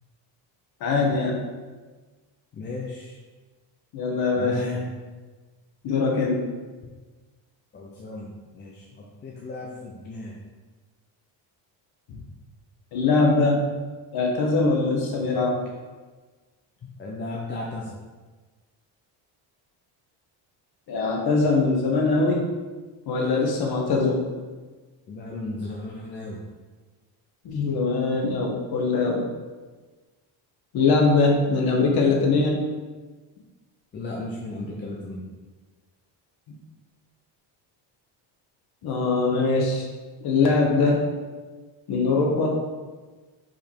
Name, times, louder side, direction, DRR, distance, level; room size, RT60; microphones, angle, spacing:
voice 1, 0.8-1.4 3.9-4.6 5.8-6.4 12.1-12.2 12.9-13.7 14.1-15.6 20.9-22.5 23.1-24.2 27.4-29.2 30.7-32.7 38.8-39.9 40.2-41.1 41.9-42.6, left 3 dB, 50° left, 0 dB, 1.3 m, -22 dB
voice 2, 2.5-3.1 4.4-4.9 7.7-8.8 9.2-10.4 17.0-17.9 25.1-26.4 33.9-35.3, left 2 dB, 25° left, -2 dB, 0.5 m, -34 dB
5.1 x 5.0 x 4.5 m, 1.3 s
cardioid pair, 175°, 47 cm